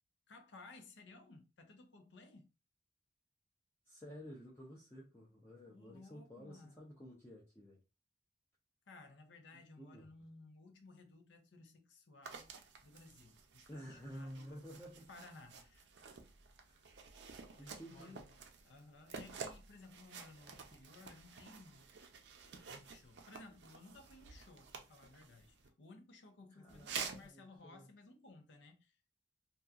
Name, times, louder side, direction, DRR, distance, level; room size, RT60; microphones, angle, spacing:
voice 1, 0.3-2.5 5.7-6.9 8.9-12.5 12.8-14.5 15.1-16.1 17.5-21.9 22.7-29.0, left 3 dB, 85° left, 0.5 m, -58 dB
voice 2, 3.9-7.8 9.8-10.1 13.7-15.1 16.6-17.0 17.6-18.2 26.6-27.9, equal, 15° left, 0.5 m, -52 dB
sound 1, 12.2-25.7 26.7-27.3, right 5 dB, 75° right, 0.5 m, -51 dB
2.7 x 2.3 x 2.3 m
head